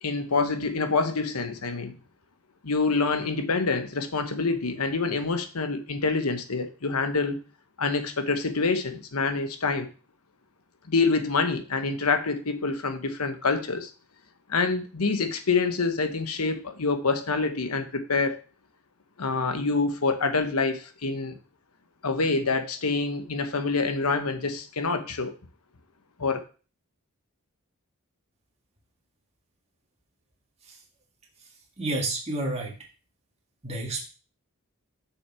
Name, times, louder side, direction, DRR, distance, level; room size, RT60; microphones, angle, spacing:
voice 1, 0.0-1.9 2.6-7.4 7.8-9.9 10.9-13.9 14.5-18.4 19.2-21.4 22.0-25.3 26.2-26.4, left 4 dB, 80° left, 1.1 m, -26 dB
voice 2, 31.8-32.8 33.6-34.0, right 2 dB, 30° right, 1.8 m, -29 dB
6.9 x 6.3 x 4.4 m
head